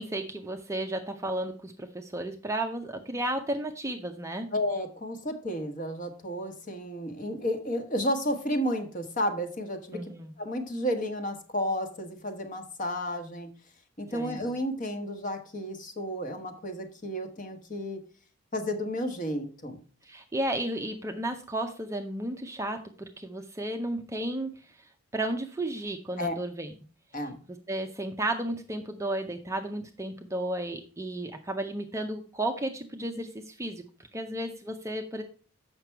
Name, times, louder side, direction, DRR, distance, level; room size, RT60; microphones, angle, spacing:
voice 1, 0.0-4.5 9.9-10.3 14.1-14.5 20.0-24.5 24.8-26.7 27.7-33.8 34.1-35.2, right 1 dB, 15° right, 5 dB, 0.5 m, -33 dB
voice 2, 4.5-10.0 10.4-13.5 14.0-18.0 18.5-19.8 26.2-26.3 27.1-27.4, equal, 35° left, 6 dB, 1.2 m, -32 dB
7.6 x 5.9 x 4.5 m, 0.39 s
head